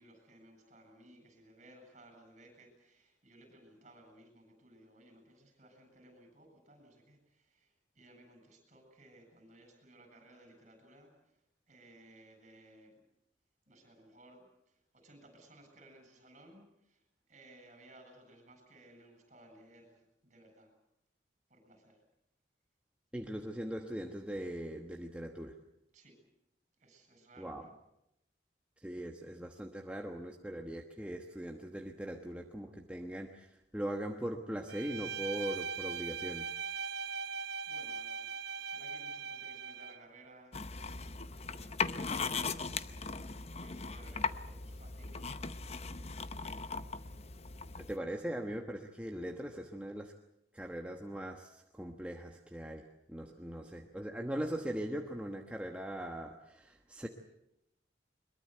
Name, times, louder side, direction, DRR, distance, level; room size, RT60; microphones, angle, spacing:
voice 1, 0.0-13.0 13.7-20.7 21.5-22.0 25.9-26.2 26.8-27.7 36.9-37.1 37.7-40.6 41.4-43.0 43.3-45.6, right 1 dB, 40° right, 6 dB, 7.9 m, -59 dB
voice 2, 23.1-25.6 27.4-27.7 28.8-36.5 47.9-50.1 50.5-57.1, right 1 dB, 5° right, 2 dB, 1.2 m, -40 dB
Bowed string instrument, 34.7-40.1, right 6 dB, 70° right, 1.0 m, -40 dB
sound 1, 40.5-48.0, left 4 dB, 35° left, 0.8 m, -39 dB
22.5 x 22.0 x 7.9 m, 0.83 s
head